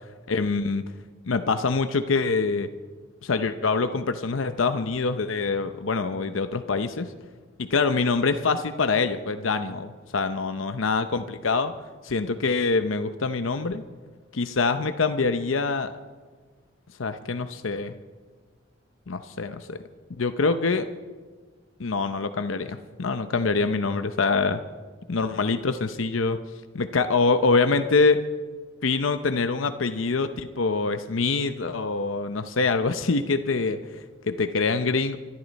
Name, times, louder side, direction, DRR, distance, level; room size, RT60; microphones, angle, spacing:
voice 1, 0.3-0.8 1.3-2.7 3.2-7.1 7.6-11.7 12.0-13.8 14.3-15.9 17.0-17.9 19.1-19.8 20.2-20.9 21.8-24.6 25.1-26.4 26.7-28.2 28.8-35.2, left 4 dB, 90° left, 9 dB, 0.7 m, -25 dB
24.5 x 13.0 x 4.1 m, 1.4 s
head